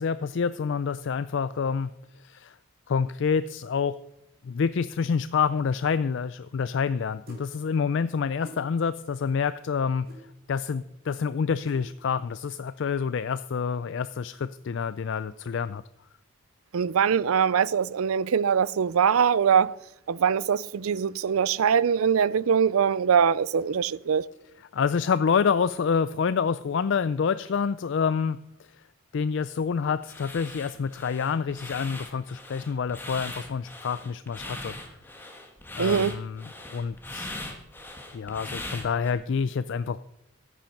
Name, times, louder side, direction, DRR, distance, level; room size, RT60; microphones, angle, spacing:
voice 1, 0.0-1.9 2.2-2.5 2.9-3.9 4.4-10.1 10.5-15.8 24.7-28.4 29.1-34.7 35.8-36.4 36.7-37.5 38.1-40.0, left 6 dB, 60° left, 0.4 m, -27 dB
sound 1, 7.3-7.5 8.4-8.6 10.1-10.2 11.7-11.8, right 1 dB, 45° right, 3.6 m, -45 dB
voice 2, 16.7-19.8 20.1-24.2 35.8-36.2, right 7 dB, 80° right, 0.4 m, -23 dB
sound 2, 30.0-39.1, left 2 dB, 10° left, 1.6 m, -40 dB
14.0 x 8.8 x 5.8 m
head